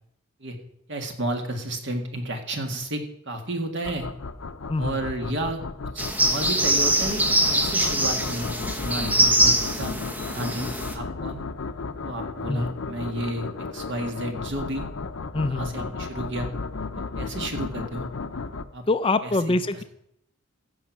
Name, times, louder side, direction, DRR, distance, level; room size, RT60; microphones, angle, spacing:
voice 1, 0.9-4.1 4.8-5.6 5.9-7.3 7.5-8.5 8.8-10.0 10.2-11.4 12.0-14.9 15.5-16.5 17.0-18.1 18.7-18.9 19.2-19.4, right 1 dB, 55° right, 4 dB, 2.0 m, -32 dB
sound 1, 3.8-18.6, left 4 dB, 70° left, 0.7 m, -34 dB
sound 2, 6.0-11.0, right 1 dB, 10° right, 1.2 m, -23 dB
voice 2, 15.3-15.9 18.9-19.8, left 2 dB, 25° left, 11 dB, 0.4 m, -25 dB
15.5 x 6.3 x 6.1 m, 0.76 s
head